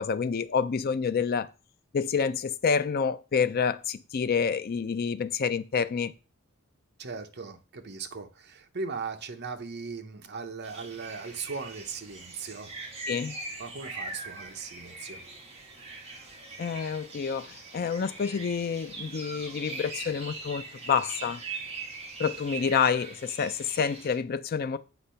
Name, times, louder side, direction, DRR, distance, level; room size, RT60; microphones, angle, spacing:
voice 1, 0.0-1.5 1.9-6.1 13.1-13.3 16.6-21.4 22.2-24.8, left 6 dB, 45° left, 0.4 m, -28 dB
voice 2, 7.0-12.7 13.6-15.2, right 4 dB, 50° right, 0.8 m, -38 dB
sound 1, 10.6-24.2, right 3 dB, 30° right, 1.5 m, -41 dB
8.1 x 3.1 x 5.6 m
head